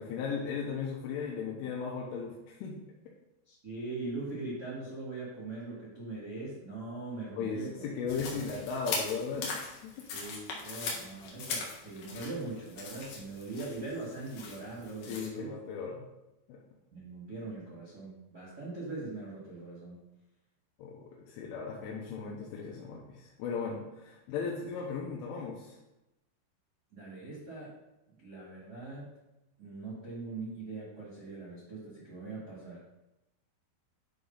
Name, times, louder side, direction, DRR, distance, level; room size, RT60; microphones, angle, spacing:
voice 1, 0.0-2.8 7.4-10.1 15.1-16.1 16.5-16.6 20.8-25.8, left 5 dB, 80° left, -3 dB, 3.4 m, -37 dB
voice 2, 3.4-7.8 8.2-8.5 10.1-15.5 16.9-20.0 26.9-27.7 28.2-29.1 29.6-32.8, right 3 dB, 40° right, -6 dB, 1.4 m, -41 dB
sound 1, 8.1-15.3, left 4 dB, 60° left, 2.4 m, -40 dB
10.0 x 4.0 x 5.5 m, 0.95 s
omnidirectional pair, 5.7 m